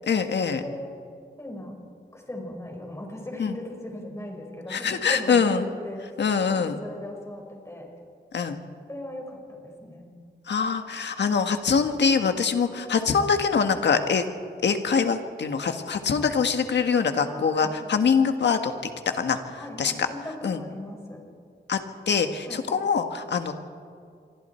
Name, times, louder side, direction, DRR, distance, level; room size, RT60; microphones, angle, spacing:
voice 1, 0.1-0.6 3.4-3.5 4.7-5.6 6.2-6.8 8.3-8.6 10.5-14.2 14.6-18.7 19.1-19.4 19.8-19.9 20.4-20.6 21.7-21.8 22.1-23.5, left 6 dB, 90° left, 7 dB, 1.7 m, -24 dB
voice 2, 1.4-1.7 2.1-6.0 6.4-7.9 8.9-10.1 17.3-17.7 19.6-21.2 22.5-22.6, left 1 dB, 15° left, 1 dB, 5.0 m, -38 dB
26.5 x 24.0 x 4.5 m, 2.3 s
wide cardioid pair, 120°, 18 cm